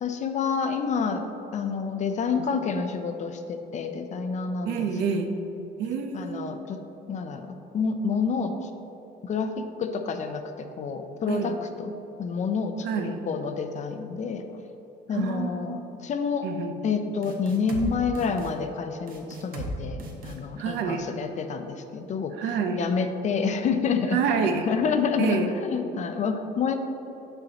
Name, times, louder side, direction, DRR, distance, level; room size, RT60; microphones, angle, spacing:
voice 1, 0.0-1.3 1.5-4.9 6.1-6.8 7.1-7.5 7.7-8.7 9.2-11.9 12.2-12.9 13.3-14.4 15.1-16.5 16.8-22.3 22.8-24.2 24.7-26.7, left 5 dB, 45° left, 7 dB, 0.6 m, -28 dB
voice 2, 4.6-5.4 5.8-6.5 11.3-11.6 12.8-13.2 15.1-16.1 16.4-16.7 20.6-21.1 22.3-22.9 24.1-24.7 25.2-25.5, right 6 dB, 75° right, 5 dB, 0.7 m, -28 dB
sound 1, 17.2-17.9 18.1-18.5 19.1-19.7 20.0-20.4, right 1 dB, 60° right, 1.1 m, -36 dB
6.7 x 5.8 x 4.0 m, 2.9 s
cardioid pair, 110°, 17 cm